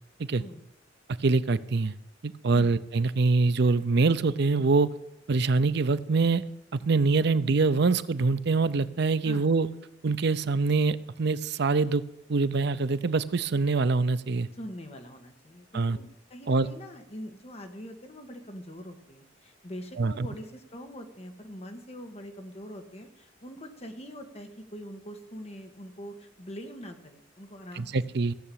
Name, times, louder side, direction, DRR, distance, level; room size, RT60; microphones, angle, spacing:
voice 1, 1.2-1.9 2.2-4.9 5.3-6.4 6.7-9.7 10.0-12.0 12.3-14.5 15.7-16.0 16.5-16.7 20.0-20.3 27.8-28.3, right 3 dB, 65° right, 14 dB, 0.6 m, -24 dB
voice 2, 14.5-27.9, equal, 35° left, 5 dB, 1.5 m, -43 dB
15.0 x 6.9 x 8.6 m, 0.83 s
head